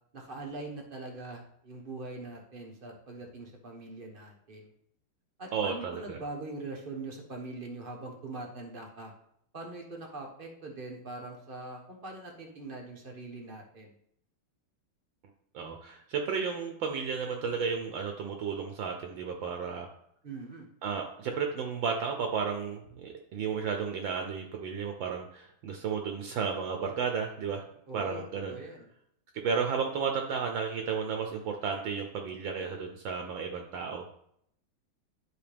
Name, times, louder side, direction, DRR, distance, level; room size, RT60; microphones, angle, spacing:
voice 1, 0.1-4.7 5.4-9.1 9.5-14.0 20.2-20.7 27.9-28.2 28.5-28.9, right 2 dB, 35° right, 1 dB, 1.0 m, -42 dB
voice 2, 5.5-6.2 15.5-19.9 20.8-27.6 27.9-28.6 29.4-34.0, right 6 dB, 70° right, 3 dB, 1.5 m, -33 dB
11.5 x 4.4 x 3.5 m, 0.71 s
omnidirectional pair, 2.3 m